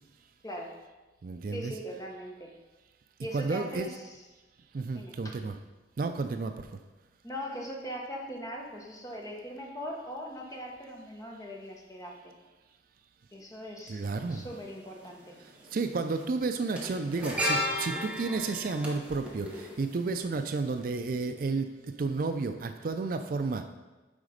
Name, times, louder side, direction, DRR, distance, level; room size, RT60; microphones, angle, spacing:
voice 1, 0.4-0.7 1.5-2.5 3.2-4.2 4.9-5.4 7.2-12.3 13.3-15.4, equal, 20° left, 0 dB, 1.0 m, -40 dB
voice 2, 1.2-1.7 3.3-3.9 4.7-5.5 6.0-6.7 13.9-14.5 15.6-23.7, right 3 dB, 50° right, 8 dB, 0.4 m, -32 dB
sound 1, 14.2-14.3 15.6-15.8 16.1-20.4 20.7-20.8, left 1 dB, 5° right, 1.0 m, -34 dB
8.8 x 4.1 x 5.1 m, 1.2 s
head